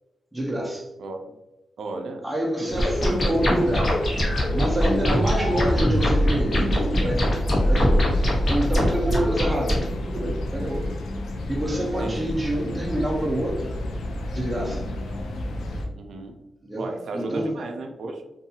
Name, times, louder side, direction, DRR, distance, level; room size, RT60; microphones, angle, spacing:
voice 1, 0.3-0.9 2.2-3.9 4.5-7.3 7.5-8.1 8.5-10.9 11.5-13.7 14.3-14.8 16.6-16.9 17.1-17.6, right 1 dB, 10° right, -2 dB, 0.5 m, -27 dB
voice 2, 1.0-1.3 1.8-2.3 2.6-2.7 9.1-9.3 12.0-12.3 16.0-16.4 16.8-18.2, right 3 dB, 75° right, 4 dB, 0.4 m, -34 dB
sound 1, 2.7-15.9, left 1 dB, 85° left, 0.4 m, -30 dB
sound 2, 2.8-9.8, equal, 45° left, 0.9 m, -22 dB
2.6 x 2.3 x 2.7 m, 0.94 s
cardioid pair, 95°, 0 cm